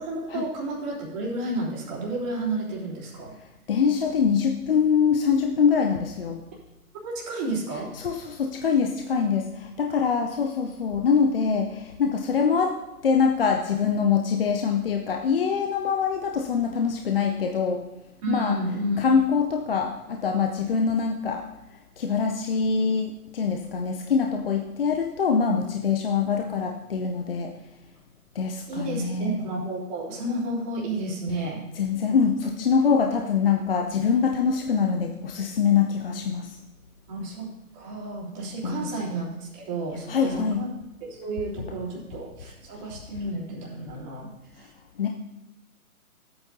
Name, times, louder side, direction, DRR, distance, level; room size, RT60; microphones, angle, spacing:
voice 1, 0.0-3.3 7.0-7.9 18.2-19.0 28.7-31.6 37.1-37.5 37.7-40.7 41.0-44.7, right 2 dB, 30° right, -6 dB, 3.2 m, -31 dB
voice 2, 3.7-6.4 7.9-12.8 13.0-17.8 18.3-18.5 19.0-21.5 22.0-27.5 28.3-29.4 31.8-36.6 38.6-38.9 40.1-40.6 45.0-45.1, left 6 dB, 40° left, 3 dB, 0.6 m, -24 dB
15.5 x 8.9 x 2.8 m, 0.96 s
figure-of-eight pair, 135°, 45 cm